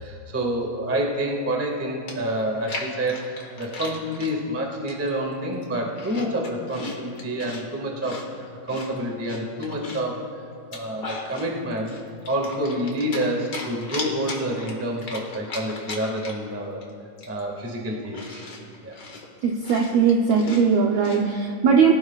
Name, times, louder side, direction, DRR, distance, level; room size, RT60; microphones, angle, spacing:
voice 1, 0.0-8.2 8.7-10.2 10.7-11.9 12.3-16.8 17.3-18.5 18.8-19.0, right 1 dB, 10° right, -1 dB, 0.7 m, -28 dB
Chewing mastication, 1.7-1.8 2.1-4.3 4.9-5.2 5.6-7.6 8.0-10.1 10.6-11.5 11.9-13.3 13.5-16.5 16.8-16.9 17.2-21.2, left 3 dB, 40° left, 1.8 m, -37 dB
voice 2, 19.4-21.9, right 6 dB, 75° right, 0 dB, 1.6 m, -19 dB
23.5 x 16.0 x 2.4 m, 2.3 s
omnidirectional pair, 3.9 m